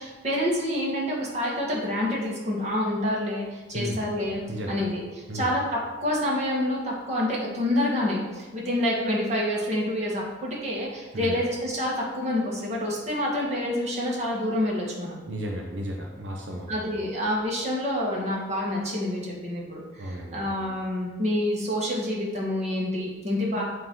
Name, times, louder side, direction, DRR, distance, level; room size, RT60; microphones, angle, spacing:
voice 1, 0.0-4.4 4.7-15.2 16.7-23.6, left 1 dB, 40° right, -4 dB, 1.7 m, -27 dB
voice 2, 3.7-4.1 4.5-4.8 5.3-5.6 11.1-11.4 15.3-16.9 20.0-20.4, equal, 85° right, 0 dB, 0.8 m, -34 dB
8.1 x 3.1 x 5.5 m, 1.2 s
head